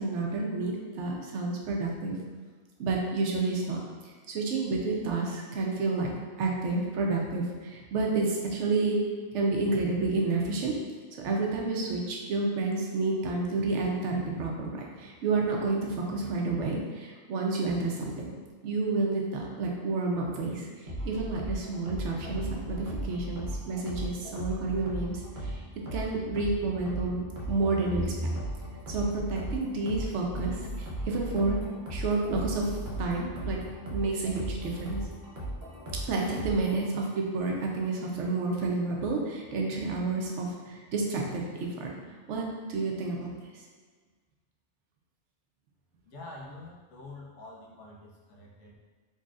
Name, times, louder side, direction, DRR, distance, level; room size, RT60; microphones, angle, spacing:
voice 1, 0.0-2.2 2.8-3.8 4.0-6.1 6.4-9.0 9.3-10.7 11.2-18.3 18.6-25.6 25.9-28.1 28.9-31.6 31.9-33.6 33.9-35.0 36.1-41.9 42.3-43.3, right 3 dB, 75° right, 0 dB, 0.9 m, -30 dB
sound 1, 20.9-36.9, right 1 dB, 50° right, 0.8 m, -36 dB
voice 2, 46.1-48.7, left 2 dB, 80° left, -2 dB, 1.0 m, -46 dB
4.0 x 3.0 x 2.4 m, 1.5 s
omnidirectional pair, 1.2 m